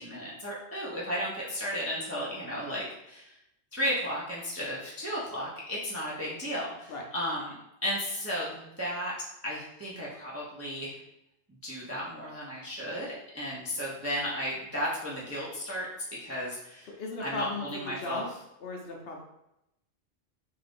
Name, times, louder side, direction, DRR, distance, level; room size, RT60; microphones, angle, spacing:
voice 1, 0.0-3.3 3.7-7.6 7.8-9.1 9.4-10.9 11.6-13.1 13.3-15.9 16.2-16.9 17.2-18.2, equal, 20° right, -6 dB, 0.4 m, -34 dB
voice 2, 16.9-18.3 18.6-19.2, left 3 dB, 65° left, 0 dB, 0.8 m, -36 dB
2.6 x 2.5 x 3.4 m, 0.84 s
omnidirectional pair, 1.2 m